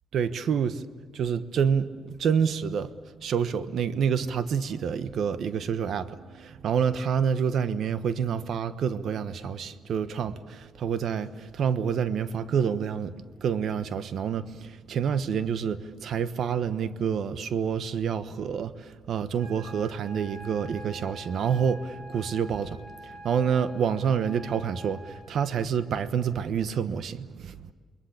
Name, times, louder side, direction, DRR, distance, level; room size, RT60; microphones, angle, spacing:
voice 1, 0.1-0.8 1.1-2.9 3.2-13.1 13.4-27.6, right 7 dB, 65° right, 1.2 m, -28 dB
sound 1, 19.4-25.4, equal, 45° right, 6.7 m, -46 dB
29.0 x 21.5 x 8.7 m
cardioid pair, 90°, 0 cm